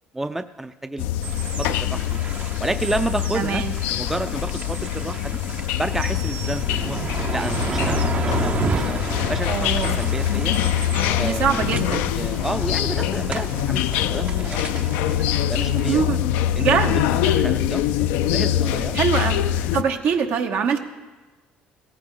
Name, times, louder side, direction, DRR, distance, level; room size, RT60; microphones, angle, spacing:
voice 1, 0.1-1.1 1.4-2.2 2.6-3.6 3.9-5.4 5.8-7.0 7.3-9.0 9.3-10.6 11.2-15.0 15.5-16.1 16.5-19.0, right 2 dB, 10° right, 10 dB, 0.5 m, -30 dB
sound 1, 1.0-19.8, left 11 dB, 90° left, 0.5 m, -24 dB
sound 2, 1.2-15.9, right 6 dB, 45° right, 0.9 m, -32 dB
voice 2, 3.3-3.7 9.5-10.0 11.2-12.0 15.9-16.2 16.6-17.0 18.9-19.4 19.7-20.8, right 7 dB, 65° right, 5 dB, 1.2 m, -23 dB
17.5 x 14.5 x 3.9 m, 1.2 s
cardioid pair, 90°, 4 cm